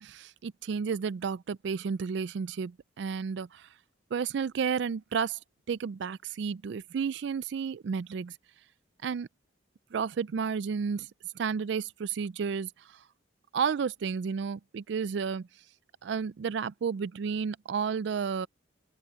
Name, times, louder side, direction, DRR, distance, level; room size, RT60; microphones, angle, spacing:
voice 1, 0.0-3.7 4.1-5.4 5.7-8.4 9.0-9.3 9.9-13.0 13.5-15.5 16.0-18.5, right 6 dB, 60° right, 0.3 m, -32 dB
open air
head